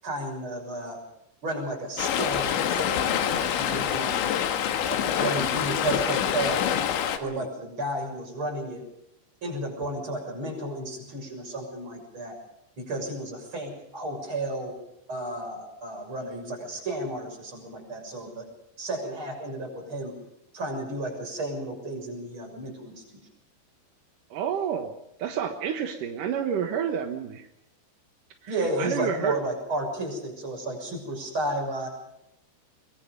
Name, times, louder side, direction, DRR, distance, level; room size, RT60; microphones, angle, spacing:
voice 1, 0.0-1.0 1.4-4.3 4.9-6.7 7.2-8.8 9.4-12.4 12.8-14.7 15.1-18.5 18.8-20.2 20.5-23.0 28.5-31.9, right 1 dB, 25° right, 2 dB, 7.2 m, -32 dB
Stream, 2.0-7.2, left 9 dB, 75° left, 3.9 m, -26 dB
voice 2, 24.3-24.9 25.2-27.5 28.4-29.4, right 8 dB, 65° right, 5 dB, 2.2 m, -30 dB
23.0 x 23.0 x 5.3 m, 0.82 s
omnidirectional pair, 5.4 m